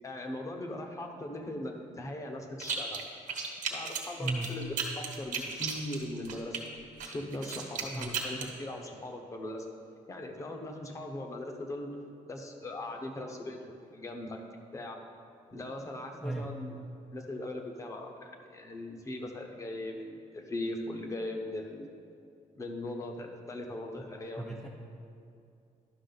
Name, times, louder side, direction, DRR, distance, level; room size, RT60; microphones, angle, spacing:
voice 1, 0.0-3.0 3.7-6.6 7.0-9.7 10.1-12.0 12.3-14.4 14.7-15.0 15.5-16.7 17.1-21.9 22.5-24.7, left 1 dB, 25° left, 3 dB, 0.8 m, -39 dB
sound 1, 2.6-3.0 3.3-6.6 7.0-8.5, right 6 dB, 65° right, 1.2 m, -35 dB
voice 2, 4.2-4.6 7.9-8.2 16.2-16.5 24.0-24.7, right 2 dB, ahead, -1 dB, 0.4 m, -37 dB
11.5 x 6.1 x 3.9 m, 2.5 s
cardioid pair, 165°, 14 cm